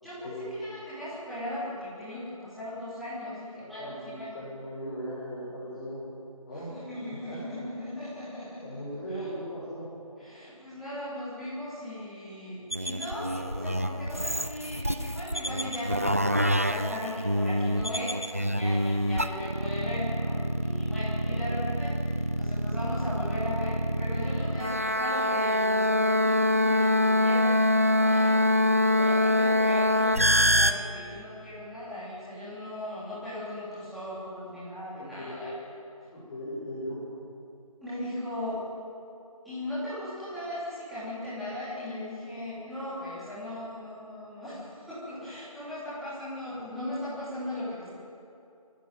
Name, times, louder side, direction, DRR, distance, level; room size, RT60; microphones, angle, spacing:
voice 1, 0.0-4.4 6.5-9.3 10.2-28.4 28.8-35.5 37.8-38.6 39.4-47.9, left 1 dB, ahead, -15 dB, 3.2 m, -38 dB
voice 2, 3.6-6.0 6.4-6.7 7.0-7.6 8.6-9.9 21.2-21.5 35.0-35.5 36.1-37.0, equal, 25° left, -9 dB, 6.2 m, -38 dB
sound 1, 12.7-30.7, left 1 dB, 25° right, 0.5 m, -25 dB
26.5 x 11.5 x 9.1 m, 2.7 s
figure-of-eight pair, 170°, 19 cm